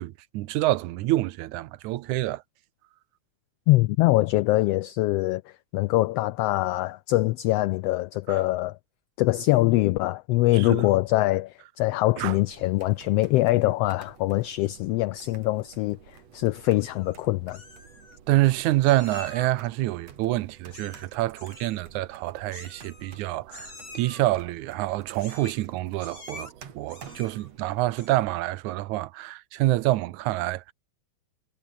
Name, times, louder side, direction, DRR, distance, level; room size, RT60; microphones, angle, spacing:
voice 1, 0.0-2.4 8.3-8.4 10.5-10.9 12.2-12.4 18.3-30.7, right 16 dB, 85° right, 2.2 m, -27 dB
voice 2, 3.7-8.8 9.2-17.6, left 18 dB, 90° left, 1.3 m, -23 dB
sound 1, 12.4-28.1, right 7 dB, 65° right, 3.5 m, -51 dB
Meow, 16.8-17.2 17.5-18.2 18.9-19.7 20.7-21.1 21.4-21.8 22.5-23.2 23.5-24.2 25.2-25.7 26.0-26.5 26.9-27.5 27.9-28.3, left 3 dB, 40° left, 7.1 m, -46 dB
omnidirectional pair, 3.3 m